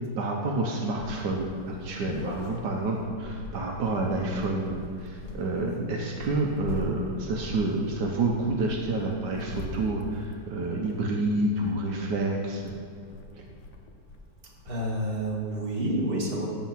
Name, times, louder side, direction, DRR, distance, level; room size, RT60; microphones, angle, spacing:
voice 1, 0.2-12.7, right 2 dB, 75° right, 0 dB, 1.5 m, -29 dB
sound 1, 1.0-15.7, left 2 dB, 75° left, 1.5 m, -42 dB
voice 2, 5.6-5.9 14.7-16.5, right 1 dB, 30° right, -3 dB, 1.9 m, -29 dB
14.0 x 4.7 x 5.8 m, 2.3 s
omnidirectional pair, 1.9 m